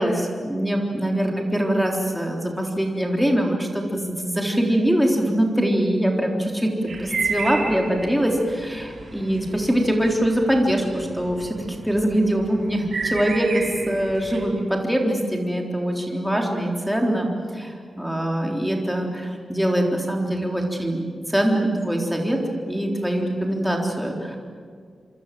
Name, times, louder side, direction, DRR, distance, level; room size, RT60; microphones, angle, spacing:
voice 1, 0.0-11.6 11.8-17.3 17.5-22.4 22.7-24.4, right 1 dB, ahead, 0 dB, 3.9 m, -23 dB
sound 1, 6.9-14.4, right 4 dB, 60° right, 4.7 m, -33 dB
26.5 x 26.0 x 7.8 m, 2.1 s
wide cardioid pair, 115°, 0 cm